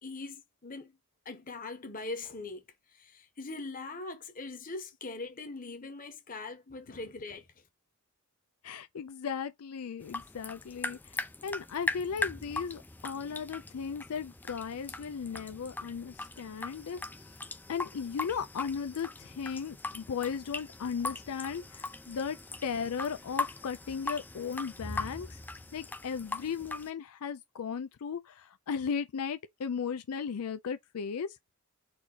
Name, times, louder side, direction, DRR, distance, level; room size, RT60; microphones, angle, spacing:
voice 1, 0.0-0.9 1.2-2.6 2.9-7.5, left 3 dB, 40° left, 1.1 m, -41 dB
voice 2, 8.6-17.0 17.7-22.4 22.6-25.4 25.7-31.4, left 6 dB, 85° left, 0.4 m, -36 dB
sound 1, 10.0-26.9, left 2 dB, 10° left, 0.3 m, -40 dB
4.3 x 2.8 x 3.8 m
head